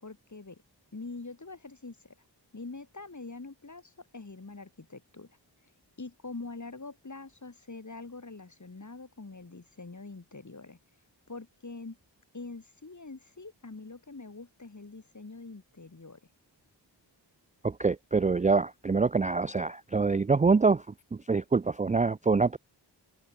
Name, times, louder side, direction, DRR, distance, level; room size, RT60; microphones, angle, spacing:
voice 1, 0.0-0.6 0.9-2.1 2.5-5.4 6.0-10.8 11.3-12.0 12.3-16.2, left 3 dB, 40° left, 3.1 m, -44 dB
voice 2, 17.6-20.9 21.1-22.6, right 4 dB, 20° right, 0.3 m, -25 dB
open air
wide cardioid pair, 60°, 43 cm